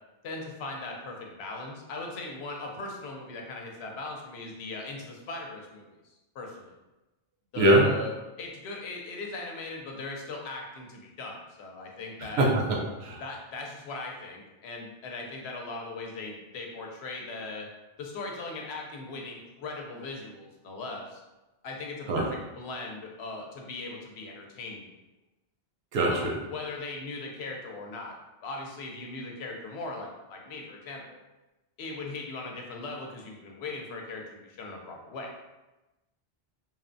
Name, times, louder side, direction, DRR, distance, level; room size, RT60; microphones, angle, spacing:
voice 1, 0.2-5.9 6.3-6.7 7.5-12.5 13.2-17.7 18.0-21.2 21.6-24.9 26.1-28.1 28.4-31.2 31.8-35.3, left 3 dB, 85° left, 0 dB, 0.8 m, -39 dB
voice 2, 7.5-7.9 12.2-13.2 22.1-22.3 25.9-26.3, right 1 dB, 85° right, -1 dB, 0.9 m, -23 dB
2.8 x 2.1 x 2.5 m, 1.0 s
omnidirectional pair, 1.0 m